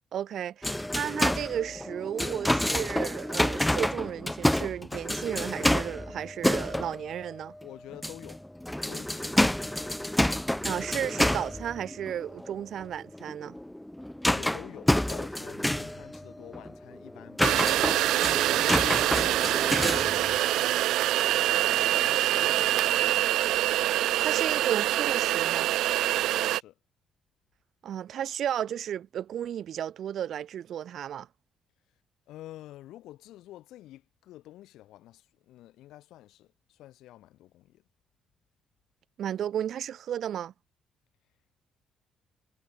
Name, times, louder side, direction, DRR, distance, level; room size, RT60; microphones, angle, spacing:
voice 1, 0.1-7.5 10.6-13.5 24.2-25.7 27.8-31.3 39.2-40.5, right 10 dB, 65° right, 2.7 m, -33 dB
sound 1, 0.6-7.6 7.9-20.4, left 1 dB, 5° left, 0.5 m, -29 dB
voice 2, 7.6-8.4 8.9-9.4 14.3-23.4 23.9-24.2 26.3-26.8 32.3-37.8, left 14 dB, 85° left, 5.1 m, -49 dB
sound 2, 17.4-26.6, right 14 dB, 90° right, 0.7 m, -25 dB
cardioid pair, 90°, 0 cm